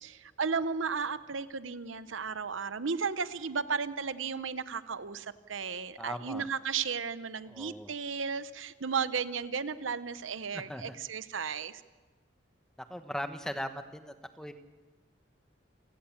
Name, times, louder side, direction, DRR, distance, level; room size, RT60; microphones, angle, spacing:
voice 1, 0.0-11.7, right 5 dB, 90° right, 14 dB, 0.9 m, -34 dB
voice 2, 6.0-6.5 7.5-7.9 10.5-11.0 12.9-14.5, equal, 5° left, 8 dB, 1.2 m, -39 dB
28.5 x 18.0 x 7.3 m, 1.3 s
head